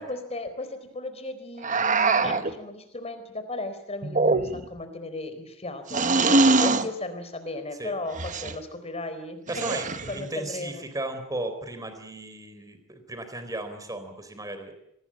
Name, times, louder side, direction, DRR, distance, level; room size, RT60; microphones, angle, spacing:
voice 1, 0.0-9.8 10.1-10.8, left 2 dB, 30° left, 9 dB, 4.2 m, -36 dB
sound 1, 1.6-2.5 4.0-4.8 5.9-6.9 8.1-8.6 9.5-10.2, right 3 dB, 40° right, 1.3 m, -23 dB
voice 2, 9.5-9.9 10.1-14.7, right 1 dB, 20° right, 9 dB, 4.0 m, -35 dB
25.5 x 19.0 x 8.8 m, 0.80 s
head